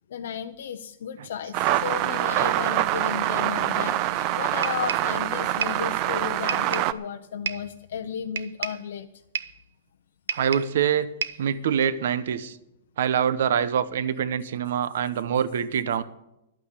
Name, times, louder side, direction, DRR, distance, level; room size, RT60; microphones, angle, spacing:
voice 1, 0.1-9.1, left 8 dB, 60° left, 6 dB, 0.7 m, -34 dB
sound 1, 1.5-6.9, right 14 dB, 25° right, 0.4 m, -25 dB
sound 2, 4.6-5.1 5.6-5.9 6.5-7.0 7.5-7.7 8.4-8.9 9.3-9.6 10.3-10.8 11.2-11.5, right 7 dB, 85° right, 0.8 m, -31 dB
voice 2, 10.3-11.1 11.4-12.6 13.0-16.0, right 8 dB, 55° right, 15 dB, 0.9 m, -25 dB
12.0 x 9.0 x 8.2 m, 0.87 s
supercardioid pair, 180°, 0 cm